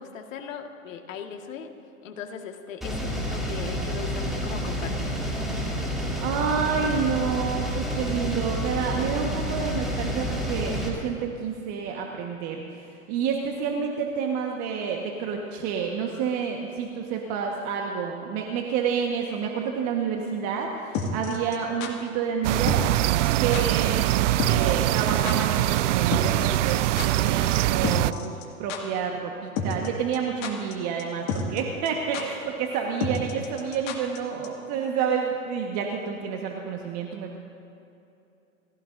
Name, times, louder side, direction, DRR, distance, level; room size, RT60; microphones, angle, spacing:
voice 1, 0.0-1.7 2.0-5.1, left 7 dB, 65° left, 4 dB, 1.9 m, -38 dB
sound 1, 2.8-10.9, equal, ahead, 2.9 m, -29 dB
voice 2, 6.2-22.8 23.4-37.4, right 6 dB, 40° right, 1 dB, 1.5 m, -29 dB
sound 2, 20.9-21.9 22.7-23.0 23.2-23.3 23.5-23.8 24.1-24.2 24.4-24.7 25.0-25.1 25.2-25.3 26.1-27.3 27.5-27.6 27.8-28.4 28.7-28.8 29.6-29.9 30.1-30.7 31.0-31.1 31.3-31.6 31.8-32.2 33.0-34.2 34.4-34.5, left 5 dB, 45° left, 2.2 m, -30 dB
sound 3, 22.4-28.1, right 16 dB, 60° right, 0.5 m, -23 dB
29.0 x 15.5 x 2.7 m, 2.7 s
hypercardioid pair, 120°, 42 cm